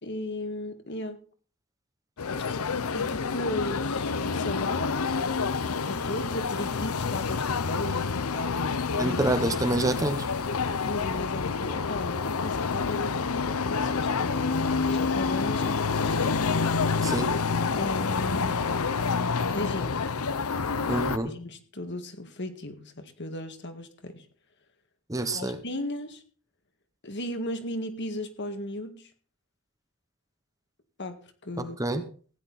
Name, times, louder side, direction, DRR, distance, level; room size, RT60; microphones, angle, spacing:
voice 1, 0.0-1.2 2.9-5.1 5.6-9.4 10.8-16.1 17.7-18.7 19.5-20.1 20.6-24.3 25.3-26.2 27.0-29.1 31.0-31.9, left 1 dB, 50° left, 7 dB, 1.9 m, -36 dB
sound 1, 2.2-21.2, left 5 dB, 75° left, 0.7 m, -28 dB
voice 2, 9.0-10.3 17.0-17.3 20.9-21.3 25.1-25.6 31.6-32.0, right 1 dB, 15° right, 9 dB, 1.0 m, -27 dB
16.0 x 10.5 x 4.2 m, 0.42 s
head